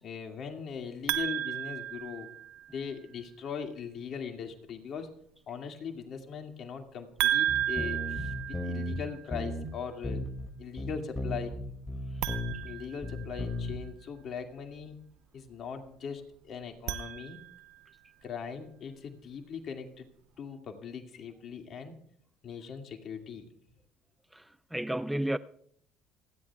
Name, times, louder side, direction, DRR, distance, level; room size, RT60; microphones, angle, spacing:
voice 1, 0.0-2.3 2.7-5.1 5.5-10.2 10.6-11.5 12.6-15.0 15.3-17.4 18.2-20.1 20.4-22.0 22.4-23.5, left 6 dB, 55° left, 2.2 m, -40 dB
sound 1, 1.1-2.8 7.2-9.2 12.1-13.7 16.6-17.8, right 12 dB, 75° right, 0.8 m, -33 dB
sound 2, 7.5-9.0 9.3-9.7 10.0-10.5 10.8-12.7 13.0-13.8, left 1 dB, 20° left, 2.4 m, -35 dB
voice 2, 24.3-25.4, right 1 dB, 5° right, 0.4 m, -32 dB
29.0 x 10.5 x 2.4 m
hypercardioid pair, 70°, 0 cm